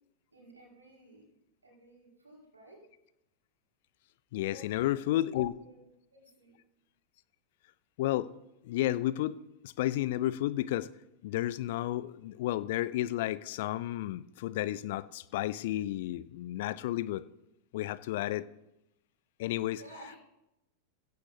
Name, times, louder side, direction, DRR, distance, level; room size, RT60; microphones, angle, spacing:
voice 1, 0.3-1.3 1.6-2.8 4.4-5.2 5.6-5.8 6.1-6.6 19.7-20.2, right 1 dB, 80° right, -2 dB, 5.8 m, -54 dB
voice 2, 4.3-5.5 8.0-8.3 8.6-9.4 9.6-10.9 11.2-17.2 17.7-18.5 19.4-19.8, left 14 dB, 50° left, 18 dB, 0.5 m, -32 dB
17.0 x 16.0 x 2.8 m, 0.87 s
figure-of-eight pair, 90°, 0 cm